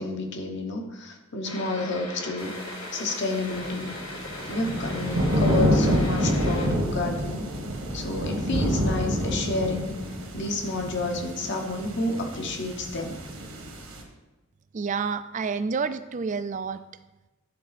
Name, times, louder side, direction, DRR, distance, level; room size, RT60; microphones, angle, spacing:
voice 1, 0.0-2.6 2.9-3.9 4.5-7.5 7.9-10.0 10.3-13.2, left 2 dB, 55° left, 3 dB, 1.1 m, -30 dB
sound 1, 1.4-6.7, left 2 dB, 75° left, 1.7 m, -38 dB
sound 2, 3.5-14.0, equal, 85° right, 1.6 m, -28 dB
voice 2, 14.7-16.8, right 5 dB, 35° right, 13 dB, 0.3 m, -29 dB
11.0 x 4.1 x 4.2 m, 1.1 s
head